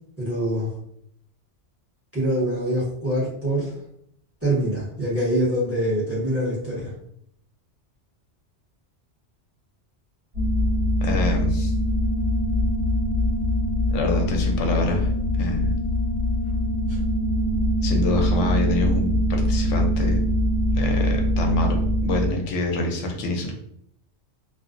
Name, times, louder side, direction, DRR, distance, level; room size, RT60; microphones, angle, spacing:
voice 1, 0.2-0.7 2.1-3.7 4.4-6.9 16.9-17.0, right 1 dB, 15° right, -8 dB, 0.9 m, -24 dB
sound 1, 10.3-22.3, equal, 45° right, 0.9 m, -23 dB
voice 2, 11.0-11.7 13.9-15.1 15.4-15.7 17.8-20.2 20.7-23.6, left 2 dB, 85° left, 2 dB, 0.9 m, -26 dB
2.5 x 2.0 x 2.4 m, 0.70 s
omnidirectional pair, 1.2 m